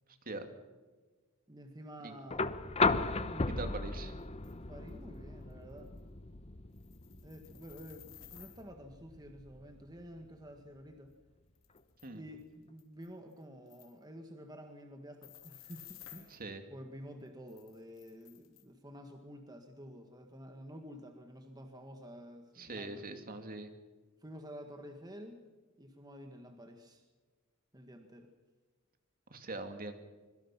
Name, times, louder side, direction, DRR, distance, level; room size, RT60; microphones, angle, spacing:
voice 1, 1.5-3.9 4.7-6.0 7.2-11.1 12.1-16.4 16.7-23.0 24.2-25.4 25.8-27.0 27.7-28.3, equal, 20° right, 4 dB, 1.8 m, -50 dB
sound 1, 2.3-10.3 11.8-11.9, left 3 dB, 30° left, 1.0 m, -36 dB
voice 2, 3.5-4.1 12.0-12.2 16.3-16.6 22.6-23.7 29.3-29.9, right 2 dB, 45° right, 6 dB, 2.6 m, -42 dB
sound 2, 4.4-4.5 4.9-5.0 5.5-5.6 5.8-6.0 6.7-8.6 11.1-11.2 11.6-12.1 12.4-12.5 12.8-13.4 13.7-13.9 15.2-16.4 17.5-18.6, left 12 dB, 70° left, 3.5 m, -55 dB
25.5 x 23.0 x 5.9 m, 1.3 s
head